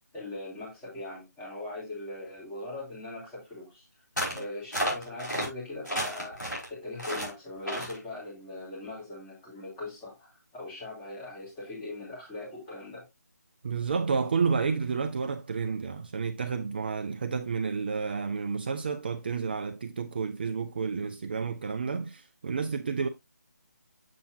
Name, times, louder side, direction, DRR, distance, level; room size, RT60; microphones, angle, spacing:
voice 1, 0.1-3.9 4.3-6.4 6.7-13.0, left 2 dB, 10° left, 3.4 m, -40 dB
sound 1, 4.2-4.4 4.7-5.5 5.8-6.7 7.0-7.3 7.7-8.0, equal, 90° left, 4.3 m, -31 dB
voice 2, 13.6-23.1, right 5 dB, 35° right, 0.4 m, -30 dB
7.5 x 6.9 x 2.6 m
figure-of-eight pair, 155°, 9 cm